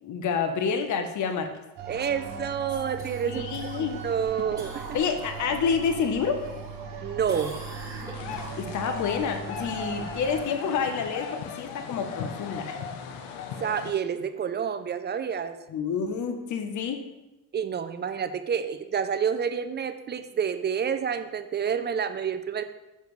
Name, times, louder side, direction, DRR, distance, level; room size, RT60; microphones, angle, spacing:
voice 1, 0.0-1.5 3.2-4.0 4.9-6.4 8.3-12.7 15.7-17.0, left 6 dB, 45° left, 7 dB, 0.7 m, -28 dB
sound 1, 1.8-10.4, right 5 dB, 70° right, 1.2 m, -39 dB
voice 2, 1.9-4.8 7.0-7.6 13.6-15.6 17.5-22.6, right 7 dB, 30° right, 10 dB, 0.3 m, -29 dB
Cough, 3.0-6.0 6.4-7.0 7.3-9.0 13.4-13.5, right 2 dB, 10° right, 1.8 m, -44 dB
sound 2, 8.1-13.9, left 6 dB, 90° left, 0.7 m, -38 dB
6.7 x 4.9 x 3.1 m, 1.0 s
supercardioid pair, 80°, 41 cm